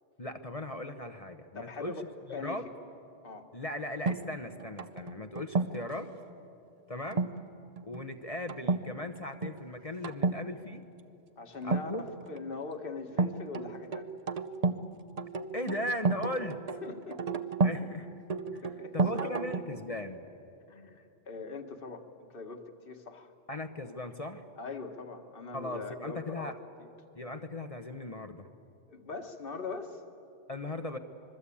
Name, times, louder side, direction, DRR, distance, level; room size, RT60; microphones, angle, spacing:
voice 1, 0.2-2.7 3.5-6.1 6.9-7.2 7.8-10.8 11.6-12.1 15.5-16.6 17.6-18.1 18.5-18.6 18.9-20.2 23.5-24.4 25.5-26.5 27.1-28.5 30.5-31.0, left 1 dB, 35° left, 7 dB, 0.9 m, -38 dB
voice 2, 1.5-2.0 2.3-2.6 3.2-3.5 11.4-14.1 16.8-17.9 18.6-19.3 20.7-23.3 24.6-26.9 28.9-30.0, left 4 dB, 50° left, 5 dB, 1.7 m, -42 dB
sound 1, 4.1-5.9 7.1-7.4 7.8-8.0 8.5-8.9 9.2-9.6 10.0-10.4 11.6-12.4 13.2-14.9 15.2-17.8 18.3-19.8, right 4 dB, 35° right, 0.7 m, -31 dB
26.0 x 22.0 x 8.6 m, 2.8 s
omnidirectional pair, 1.3 m